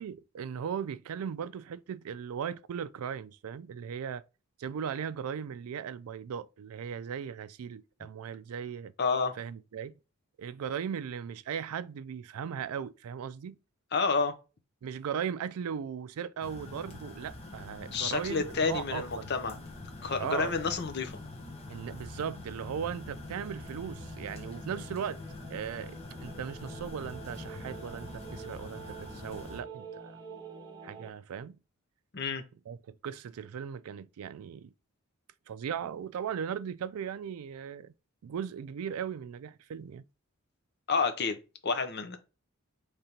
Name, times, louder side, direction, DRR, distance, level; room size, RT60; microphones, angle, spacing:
voice 1, 0.0-4.2 4.6-8.9 9.4-10.0 10.4-13.6 14.8-19.3 20.2-20.5 21.7-25.2 25.5-30.2 30.8-31.6 32.7-34.7 35.5-37.9 38.2-40.0, right 7 dB, 85° right, 0.3 m, -38 dB
voice 2, 9.0-9.3 13.9-14.3 17.9-19.6 20.0-21.2 32.1-32.4 40.9-42.2, left 4 dB, 50° left, 0.7 m, -30 dB
sound 1, 16.4-29.6, left 2 dB, 30° left, 1.0 m, -44 dB
sound 2, 22.7-31.1, right 4 dB, 20° right, 1.0 m, -48 dB
5.1 x 3.3 x 2.8 m
head